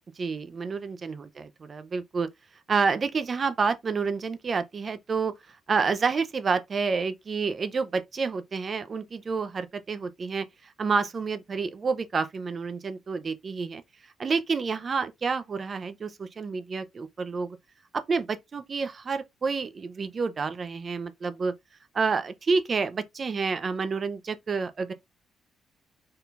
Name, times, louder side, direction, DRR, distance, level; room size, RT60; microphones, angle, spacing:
voice 1, 0.2-2.3 2.7-5.3 5.7-13.8 14.2-17.6 17.9-21.5 21.9-24.9, right 5 dB, 40° right, 0.6 m, -29 dB
4.3 x 3.8 x 2.5 m
cardioid pair, 90°, 0 cm